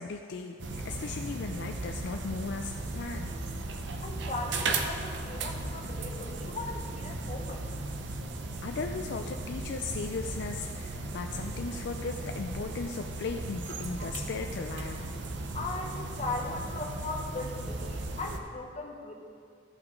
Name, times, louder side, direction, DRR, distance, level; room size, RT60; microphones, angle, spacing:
voice 1, 0.0-3.3 8.6-15.1, left 4 dB, 65° left, 4 dB, 0.4 m, -37 dB
sound 1, 0.6-18.4, right 2 dB, 65° right, 0.7 m, -36 dB
voice 2, 4.0-7.7 15.5-19.1, left 3 dB, 40° left, 1 dB, 1.1 m, -38 dB
14.0 x 5.8 x 3.9 m, 2.3 s
head